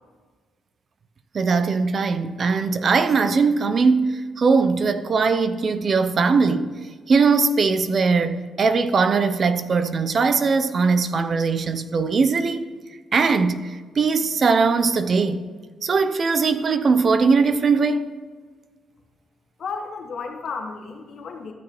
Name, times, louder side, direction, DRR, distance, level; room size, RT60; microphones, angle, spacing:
voice 1, 1.3-6.7 7.1-12.7 13.1-15.4 15.8-18.0, right 4 dB, 45° right, 0.6 m, -20 dB
voice 2, 19.6-21.5, left 5 dB, 55° left, 1.6 m, -33 dB
13.5 x 6.3 x 3.1 m
cardioid pair, 90°, 0 cm